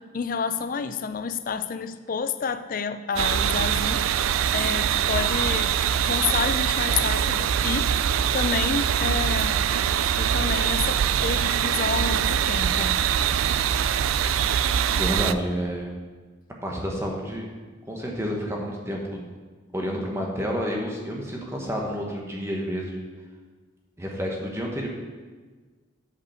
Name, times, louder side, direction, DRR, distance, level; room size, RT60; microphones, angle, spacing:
voice 1, 0.0-7.9 8.3-9.6 10.2-13.0 13.7-13.8 14.2-14.3, left 5 dB, 45° left, 11 dB, 0.4 m, -30 dB
sound 1, 3.2-15.3, right 9 dB, 90° right, 0.3 m, -23 dB
voice 2, 14.9-16.0 16.6-17.5 17.9-19.2 19.7-22.9 24.0-24.9, equal, 15° right, -1 dB, 1.3 m, -29 dB
8.2 x 5.2 x 6.4 m, 1.4 s
head